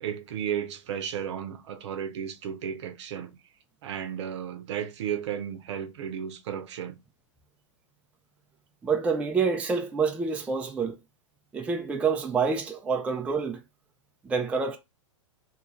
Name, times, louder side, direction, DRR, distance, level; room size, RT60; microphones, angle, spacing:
voice 1, 0.0-3.4 3.8-7.0, right 8 dB, 60° right, 0.7 m, -34 dB
voice 2, 8.8-11.0 11.5-13.6 14.2-14.8, right 5 dB, 10° right, 0.4 m, -27 dB
2.8 x 2.5 x 4.0 m
hypercardioid pair, 110°, 17 cm